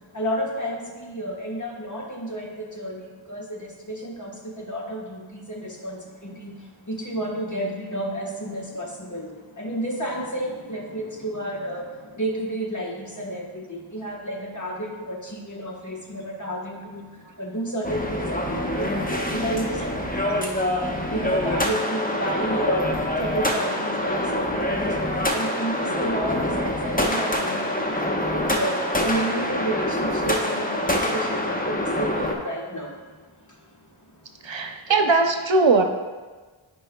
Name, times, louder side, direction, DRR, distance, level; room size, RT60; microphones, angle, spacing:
voice 1, 0.1-6.6 6.9-17.1 17.4-20.8 21.1-22.9 23.2-24.8 25.2-32.9, right 1 dB, 40° left, -1 dB, 1.4 m, -31 dB
sound 1, 17.8-32.3, left 1 dB, 20° left, 1.0 m, -25 dB
voice 2, 34.4-35.8, right 3 dB, 70° right, 5 dB, 0.8 m, -19 dB
14.0 x 5.3 x 2.3 m, 1.4 s
wide cardioid pair, 45°, 47 cm